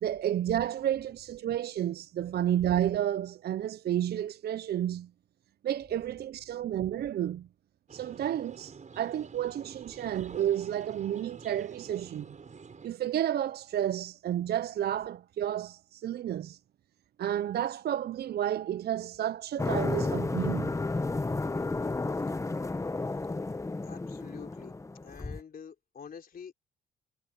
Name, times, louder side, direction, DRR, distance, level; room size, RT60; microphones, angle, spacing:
voice 1, 0.0-5.1 5.6-7.5 7.9-12.3 12.8-16.6 17.2-20.7, right 11 dB, 55° right, 0.5 m, -31 dB
sound 1, 7.9-12.9, right 5 dB, 40° right, 6.7 m, -48 dB
sound 2, 19.6-25.4, left 3 dB, 15° left, 0.9 m, -32 dB
voice 2, 23.8-24.8 25.0-26.5, left 7 dB, 50° left, 3.7 m, -46 dB
cardioid pair, 90°, 20 cm